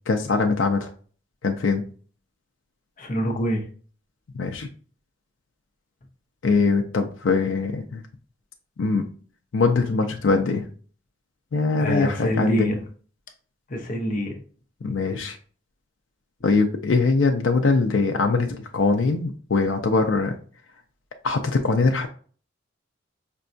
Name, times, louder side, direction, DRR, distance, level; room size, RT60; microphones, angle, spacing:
voice 1, 0.1-0.9 1.4-1.8 4.3-4.7 6.4-8.0 8.8-9.0 9.5-10.7 11.5-12.8 14.8-15.4 16.4-20.4 21.2-22.1, left 4 dB, 75° left, 4 dB, 0.4 m, -22 dB
voice 2, 3.0-3.6 11.8-12.7 13.7-14.3, equal, 45° left, 4 dB, 0.7 m, -25 dB
5.1 x 2.3 x 2.5 m, 0.41 s
head